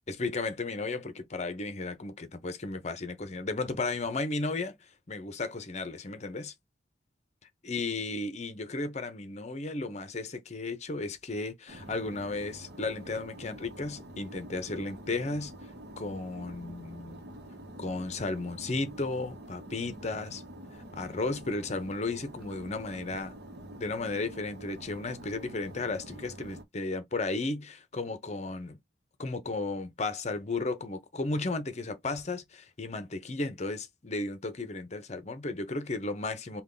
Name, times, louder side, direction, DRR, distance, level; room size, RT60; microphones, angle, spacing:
voice 1, 0.1-4.8 5.1-6.5 7.6-15.5 16.0-17.2 17.8-20.4 21.0-23.3 23.8-28.8 29.2-36.6, left 3 dB, 40° left, 0.7 m, -34 dB
sound 1, 11.7-26.6, right 1 dB, 60° right, 1.0 m, -47 dB
3.5 x 2.3 x 3.8 m
head